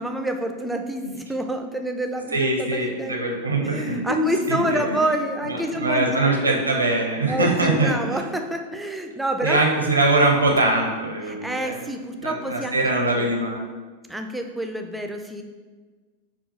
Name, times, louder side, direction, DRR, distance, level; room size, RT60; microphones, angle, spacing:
voice 1, 0.0-3.2 3.6-6.4 7.3-9.6 11.2-12.8 13.1-13.3 14.1-15.4, right 1 dB, 5° right, 4 dB, 0.3 m, -28 dB
voice 2, 2.3-5.0 5.5-8.2 9.4-11.8 12.2-13.6, right 2 dB, 80° right, 1 dB, 0.5 m, -22 dB
5.4 x 2.3 x 2.5 m, 1.4 s
figure-of-eight pair, 90°, 0 cm